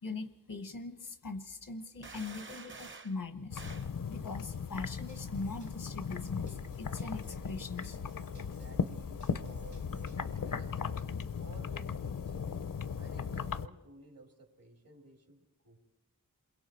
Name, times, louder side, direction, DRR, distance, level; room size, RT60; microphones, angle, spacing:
voice 1, 0.0-3.6 4.1-8.0, left 3 dB, 90° left, 10 dB, 1.3 m, -41 dB
sound 1, 2.0-3.2 3.6-3.9, right 4 dB, 35° right, 0.6 m, -48 dB
sound 2, 3.5-13.7, left 6 dB, 70° left, 0.6 m, -37 dB
Drum kit / Drum, 4.7-10.3, right 3 dB, 55° right, 1.2 m, -57 dB
voice 2, 8.3-11.0 11.4-12.5 13.0-15.8, right 2 dB, 80° right, 3 dB, 3.1 m, -56 dB
27.5 x 22.0 x 4.4 m, 0.90 s
wide cardioid pair, 60°, 34 cm